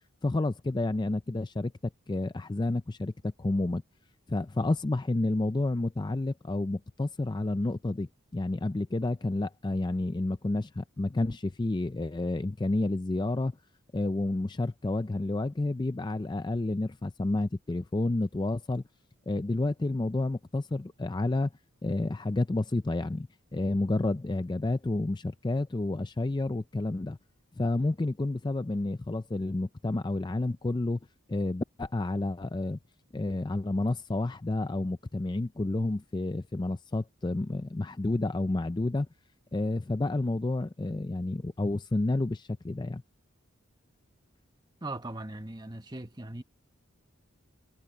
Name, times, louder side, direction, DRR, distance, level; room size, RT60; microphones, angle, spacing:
voice 1, 0.2-1.7 2.1-3.8 4.3-13.5 13.9-18.8 19.3-21.5 21.8-27.2 27.6-31.0 31.3-32.8 33.1-39.1 39.5-43.0, left 2 dB, 20° left, 0.4 m, -30 dB
voice 2, 44.8-46.4, right 2 dB, 20° right, 1.2 m, -39 dB
head